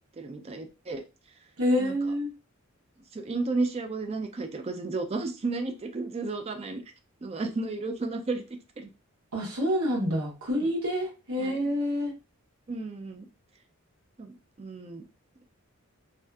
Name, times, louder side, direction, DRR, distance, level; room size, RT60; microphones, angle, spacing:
voice 1, 0.1-1.0 1.8-1.9 3.1-6.8 7.2-8.4 8.8-8.9 10.5-10.7 11.4-11.6 12.7-13.3 14.2-15.1, right 3 dB, 30° right, 6 dB, 0.3 m, -33 dB
voice 2, 1.6-2.3 9.3-12.1, equal, 90° right, -2 dB, 1.0 m, -27 dB
2.6 x 2.4 x 2.2 m, 0.30 s
head